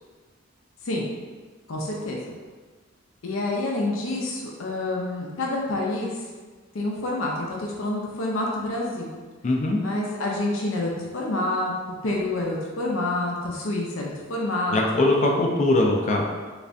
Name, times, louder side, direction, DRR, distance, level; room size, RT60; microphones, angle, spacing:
voice 1, 1.7-2.2 3.2-6.2 6.7-9.1 9.8-11.7 12.0-14.8, left 2 dB, 90° left, -2 dB, 0.6 m, -28 dB
voice 2, 9.4-9.8 14.7-16.2, left 2 dB, 35° left, -1 dB, 0.4 m, -21 dB
3.3 x 3.2 x 2.6 m, 1.4 s
head